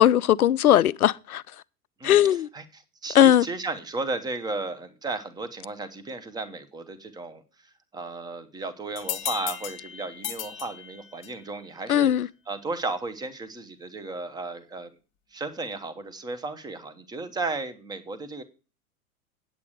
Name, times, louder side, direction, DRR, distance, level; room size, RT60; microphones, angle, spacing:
voice 1, 0.0-1.4 2.0-2.5 3.1-3.5 11.9-12.3, left 11 dB, 70° left, 0.6 m, -18 dB
voice 2, 2.5-7.4 7.9-12.1 12.5-14.9 15.3-18.4, right 3 dB, 10° right, 0.9 m, -34 dB
sound 1, 9.0-11.5, left 11 dB, 25° left, 1.1 m, -35 dB
8.8 x 8.3 x 4.9 m
figure-of-eight pair, 95°, 45 cm